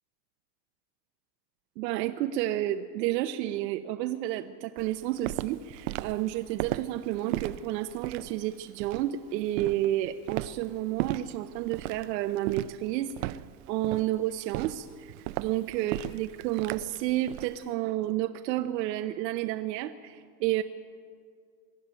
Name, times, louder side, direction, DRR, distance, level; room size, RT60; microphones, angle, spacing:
voice 1, 1.8-13.4 13.7-20.6, right 14 dB, 80° right, 7 dB, 1.0 m, -31 dB
Walk footsteps, 4.8-17.6, right 16 dB, 60° right, 0.7 m, -36 dB
23.5 x 13.0 x 9.0 m, 2.2 s
supercardioid pair, 170°, 49 cm